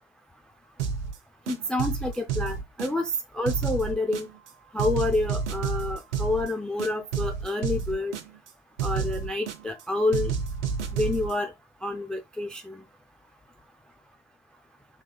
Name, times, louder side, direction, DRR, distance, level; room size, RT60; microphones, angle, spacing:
sound 1, 0.8-1.2 1.5-3.2 3.5-4.5 4.8-6.5 6.8-8.5 8.8-9.8 10.1-11.3, right 6 dB, 75° right, 0.7 m, -30 dB
voice 1, 1.5-4.3 4.7-8.1 8.8-10.3 10.9-11.5 11.8-12.8, left 2 dB, ahead, 0.4 m, -28 dB
5.9 x 3.6 x 2.2 m
figure-of-eight pair, 65°, 35 cm